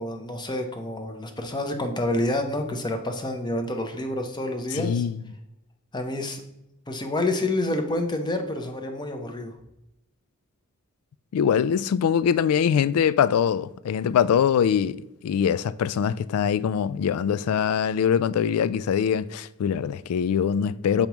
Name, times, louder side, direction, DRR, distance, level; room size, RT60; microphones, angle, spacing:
voice 1, 0.0-5.0 5.9-6.4 6.9-9.6, left 1 dB, 20° left, 0.7 m, -28 dB
voice 2, 4.7-5.2 11.3-21.1, left 8 dB, 80° left, 0.3 m, -23 dB
7.0 x 5.2 x 3.0 m
head